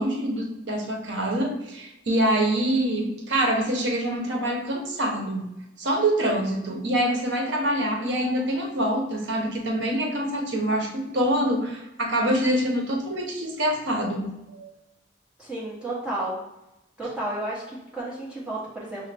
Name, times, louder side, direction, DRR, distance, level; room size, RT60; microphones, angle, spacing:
voice 1, 0.0-5.5 5.8-14.7, right 1 dB, 70° right, 1 dB, 0.8 m, -25 dB
voice 2, 15.4-16.4 17.0-19.1, right 1 dB, 5° right, -8 dB, 1.0 m, -32 dB
5.4 x 2.1 x 3.3 m, 0.92 s
head